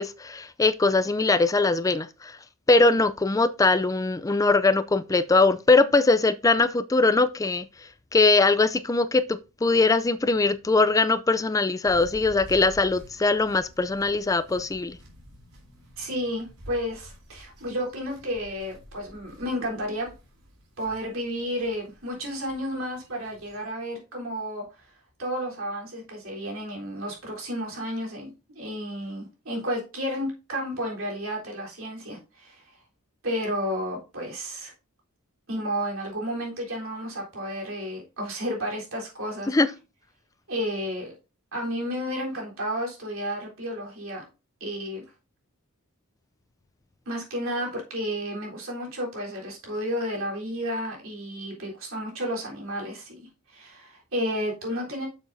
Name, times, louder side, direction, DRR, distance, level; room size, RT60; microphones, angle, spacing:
voice 1, 0.0-2.4 2.7-7.7 8.1-15.0 39.5-39.7, left 3 dB, 15° left, 0.4 m, -21 dB
sound 1, 11.8-23.7, equal, 90° right, 3.3 m, -49 dB
voice 2, 16.0-20.1 20.8-24.7 25.2-28.3 28.6-32.6 33.2-34.7 35.5-39.5 40.5-41.1 41.5-44.2 44.6-45.0 47.1-53.2 53.5-55.1, equal, 65° right, 3.7 m, -32 dB
8.7 x 7.2 x 2.6 m
head